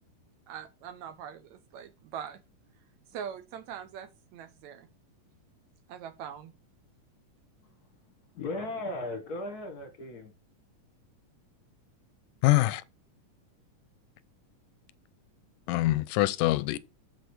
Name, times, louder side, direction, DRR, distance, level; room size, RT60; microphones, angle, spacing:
voice 1, 0.5-2.4 3.1-4.9 5.9-6.5, right 8 dB, 70° right, 2.0 m, -42 dB
voice 2, 8.0-10.3, left 2 dB, 45° left, 1.3 m, -37 dB
voice 3, 12.4-12.8 15.7-16.8, left 17 dB, 85° left, 2.1 m, -24 dB
6.9 x 6.2 x 4.8 m
omnidirectional pair, 3.7 m